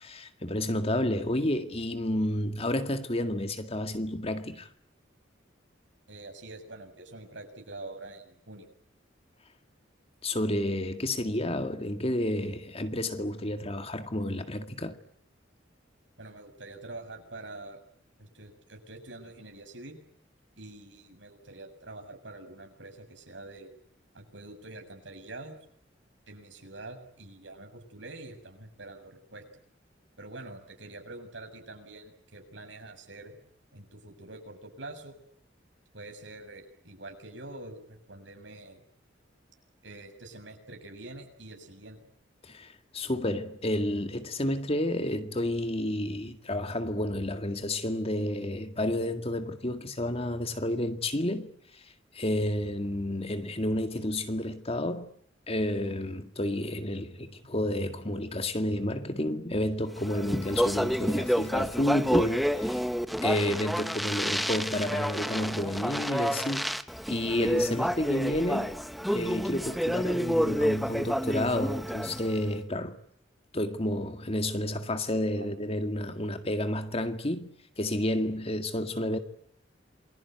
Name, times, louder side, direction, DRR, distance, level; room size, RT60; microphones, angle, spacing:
voice 1, 0.0-4.7 10.2-15.0 42.4-51.5 52.1-55.1 55.5-62.8 63.2-66.7 67.1-68.7 69.1-73.0 73.5-77.5 77.8-79.2, left 1 dB, 30° left, 2.0 m, -30 dB
voice 2, 6.1-8.7 16.2-17.8 18.2-20.0 20.6-23.7 24.1-25.6 26.3-29.4 30.2-33.3 33.7-35.1 35.9-38.8 39.8-42.0 64.7-65.0 75.3-75.5, right 2 dB, 75° right, 7.1 m, -45 dB
Speech, 60.0-72.4, equal, ahead, 1.0 m, -29 dB
28.0 x 22.0 x 9.3 m
head